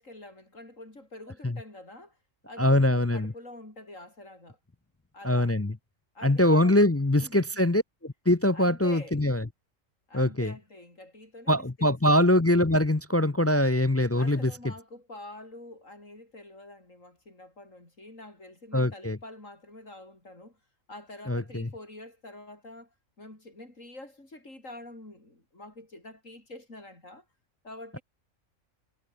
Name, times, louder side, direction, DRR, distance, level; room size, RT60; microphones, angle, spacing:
voice 1, 0.0-2.2 2.5-4.6 5.1-5.5 6.1-6.8 7.2-7.4 8.5-9.2 10.1-12.2 14.2-20.6 20.9-27.2 27.6-28.0, left 2 dB, 75° left, 7.6 m, -46 dB
voice 2, 2.6-3.3 5.2-5.7 6.2-9.4 10.1-10.5 11.5-14.5 18.7-19.2 21.3-21.7, left 1 dB, 20° left, 0.4 m, -23 dB
omnidirectional pair, 1.4 m